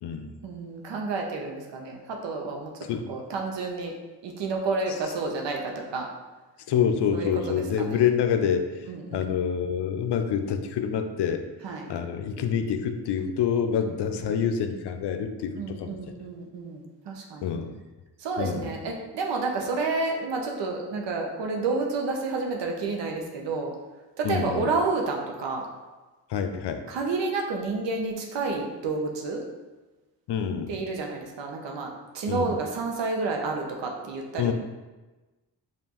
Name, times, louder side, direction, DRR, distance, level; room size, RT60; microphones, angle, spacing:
voice 1, 0.4-2.7 3.1-3.9 4.2-6.1 7.1-8.0 8.9-9.3 11.6-11.9 13.8-14.3 15.6-17.5 18.2-23.7 24.2-25.7 26.9-29.4 30.7-34.5, right 3 dB, 75° right, 1 dB, 0.8 m, -30 dB
voice 2, 2.8-3.1 6.7-8.7 9.1-11.4 11.9-16.0 17.4-17.7 18.4-18.7 24.2-24.7 26.3-26.8 30.3-30.7 32.3-32.5 34.4-34.5, left 7 dB, 70° left, 7 dB, 0.5 m, -27 dB
5.1 x 2.6 x 2.9 m, 1.2 s
supercardioid pair, 50°, 43 cm